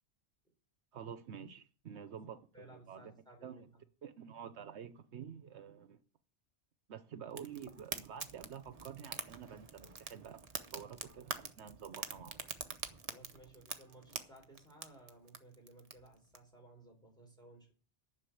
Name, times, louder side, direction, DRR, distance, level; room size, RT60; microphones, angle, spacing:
voice 1, 0.9-3.1 3.4-3.7 4.0-6.0 6.9-10.4 10.7-12.5, right 8 dB, 75° right, 1.0 m, -49 dB
voice 2, 2.5-3.8 13.1-17.7, right 1 dB, 5° left, 4.3 m, -58 dB
Fire, 7.3-16.4, right 4 dB, 35° right, 1.0 m, -46 dB
11.0 x 6.0 x 8.6 m
omnidirectional pair, 1.2 m